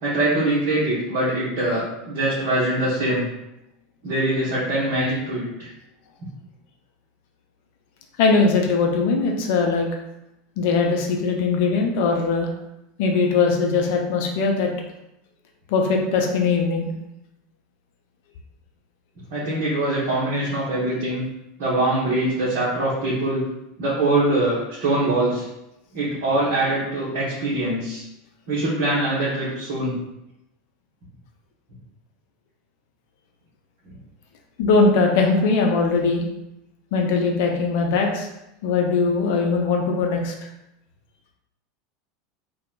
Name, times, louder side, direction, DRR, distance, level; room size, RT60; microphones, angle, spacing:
voice 1, 0.0-3.2 4.0-5.7 19.3-21.2 21.6-23.4 23.8-25.4 25.9-28.0 28.5-29.9, right 1 dB, 50° right, -8 dB, 0.7 m, -23 dB
voice 2, 8.2-9.9 10.6-12.5 13.0-14.7 15.7-16.9 34.6-36.2 36.9-38.3 38.6-40.3, left 4 dB, 55° left, 1 dB, 0.4 m, -20 dB
2.8 x 2.0 x 2.3 m, 0.87 s
figure-of-eight pair, 80°, 0 cm